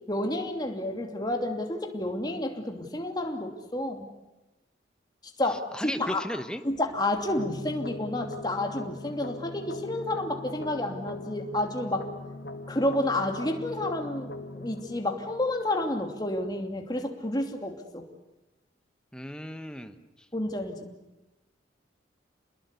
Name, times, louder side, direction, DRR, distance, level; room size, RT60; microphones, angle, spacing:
voice 1, 0.1-4.1 5.4-6.3 6.6-12.1 12.7-18.0 20.3-20.9, left 1 dB, 20° left, 3 dB, 2.8 m, -30 dB
voice 2, 5.7-6.6 19.1-20.0, equal, 5° left, 8 dB, 1.2 m, -35 dB
sound 1, 7.4-16.4, left 2 dB, 60° left, 2.0 m, -41 dB
29.0 x 21.0 x 8.4 m, 1.0 s
head